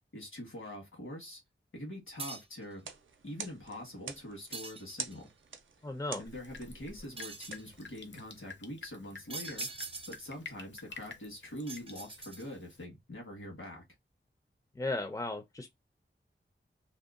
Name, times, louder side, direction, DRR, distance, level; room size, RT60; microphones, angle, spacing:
voice 1, 0.1-1.4 1.7-2.9 3.2-5.3 6.2-9.7 10.1-13.8, left 1 dB, 85° left, 1.2 m, -44 dB
Metal blade drop, 2.2-2.6 4.5-5.3 7.2-7.7 9.3-10.4 11.7-12.7, right 3 dB, 30° right, 0.6 m, -43 dB
sound 1, 2.7-8.5, right 5 dB, 75° right, 0.4 m, -47 dB
voice 2, 5.8-6.2 14.8-15.7, left 2 dB, 15° left, 0.4 m, -35 dB
Drip, 6.3-12.8, left 4 dB, 65° left, 0.6 m, -50 dB
2.7 x 2.1 x 2.4 m
wide cardioid pair, 75°, 20 cm